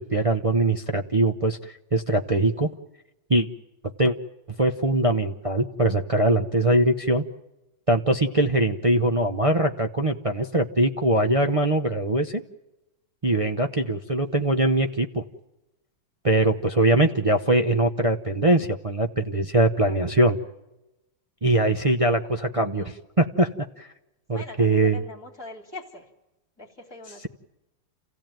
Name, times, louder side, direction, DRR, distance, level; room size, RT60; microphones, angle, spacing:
voice 1, 0.0-2.7 3.3-3.5 4.0-4.1 4.6-7.2 7.9-12.4 13.2-15.2 16.2-20.4 21.4-23.5 23.8-23.9 24.3-25.0, right 2 dB, 35° right, 3 dB, 0.5 m, -22 dB
voice 2, 24.3-26.1 26.6-27.3, left 2 dB, 10° left, 1 dB, 3.6 m, -42 dB
29.0 x 16.0 x 9.1 m, 0.98 s
omnidirectional pair, 2.0 m